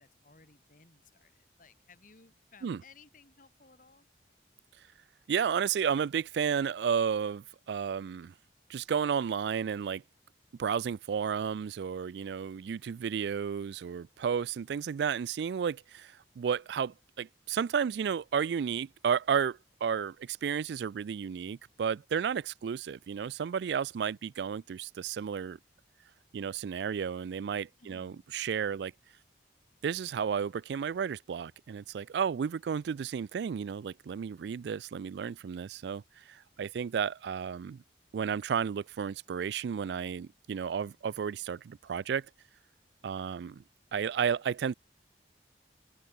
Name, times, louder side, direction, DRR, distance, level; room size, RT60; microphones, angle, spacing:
voice 1, 0.0-4.1 27.8-28.3, left 4 dB, 45° left, 2.2 m, -59 dB
voice 2, 5.3-8.3 8.7-10.0 10.6-25.6 26.3-28.9 29.8-37.8 38.1-42.3 43.0-43.6 43.9-44.7, right 7 dB, 65° right, 0.3 m, -32 dB
open air
head